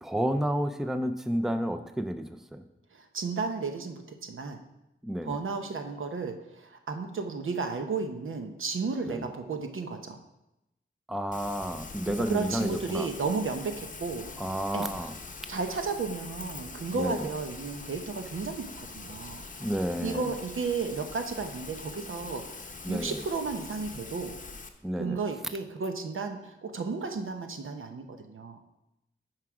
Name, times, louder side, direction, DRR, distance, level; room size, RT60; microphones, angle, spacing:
voice 1, 0.0-2.2 2.5-2.6 5.0-5.4 9.1-9.3 11.1-13.1 14.4-15.1 16.9-17.3 19.6-20.3 22.8-23.2 24.8-25.2, equal, ahead, 9 dB, 0.5 m, -31 dB
voice 2, 2.9-4.6 5.2-10.2 12.0-14.3 14.7-15.1 15.5-19.4 20.0-24.3 25.0-28.6, right 4 dB, 80° right, 6 dB, 0.9 m, -33 dB
Rain, 11.3-24.7, left 4 dB, 40° left, 0.7 m, -43 dB
9.7 x 4.9 x 4.8 m, 0.91 s
wide cardioid pair, 105°, 21 cm